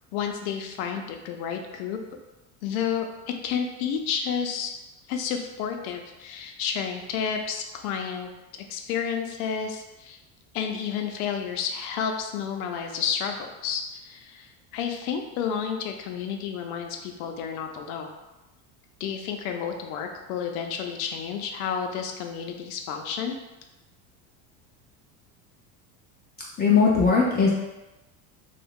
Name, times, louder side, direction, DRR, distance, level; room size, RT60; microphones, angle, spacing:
voice 1, 0.1-2.0 2.6-3.1 3.4-4.7 5.1-8.3 8.7-10.2 10.5-18.1 19.0-23.3, left 7 dB, 85° left, 4 dB, 0.6 m, -31 dB
voice 2, 26.6-27.5, left 5 dB, 25° left, -4 dB, 0.4 m, -19 dB
2.7 x 2.3 x 3.5 m, 1.0 s
supercardioid pair, 115°, 42 cm